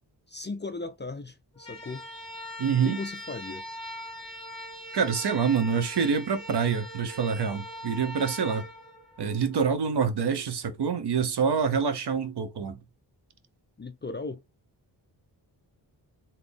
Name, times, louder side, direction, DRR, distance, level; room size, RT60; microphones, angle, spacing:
voice 1, 0.3-2.1 2.8-3.6 13.8-14.4, left 3 dB, 25° left, 0.4 m, -37 dB
sound 1, 1.5-9.7, equal, 10° left, 1.9 m, -41 dB
voice 2, 2.6-3.0 4.9-8.7 9.2-12.8, right 6 dB, 65° right, 0.8 m, -26 dB
4.1 x 2.8 x 3.4 m
wide cardioid pair, 140°, 43 cm